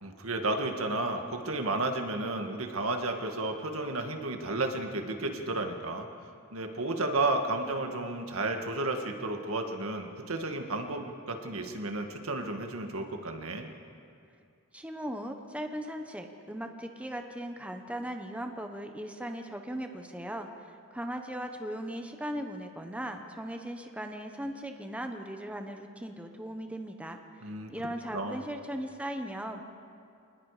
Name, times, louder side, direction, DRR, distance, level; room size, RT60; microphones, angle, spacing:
voice 1, 0.0-6.1 6.5-13.7 27.4-27.7 28.1-28.4, right 2 dB, 70° right, 4 dB, 1.9 m, -32 dB
voice 2, 14.7-29.6, equal, 5° right, 5 dB, 1.0 m, -38 dB
27.0 x 20.0 x 5.0 m, 2.4 s
head